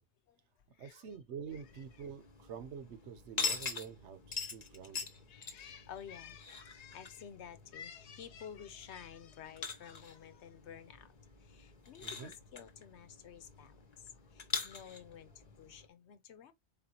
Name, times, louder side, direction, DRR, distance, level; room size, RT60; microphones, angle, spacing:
voice 1, 0.8-5.1 12.0-12.3, right 7 dB, 80° right, 1.0 m, -47 dB
sound 1, 1.5-15.9, left 5 dB, 40° left, 0.8 m, -44 dB
voice 2, 5.3-11.1 11.5-13.7 14.3-15.3 15.6-16.5, left 8 dB, 75° left, 1.0 m, -51 dB
4.3 x 3.4 x 2.8 m
omnidirectional pair, 1.2 m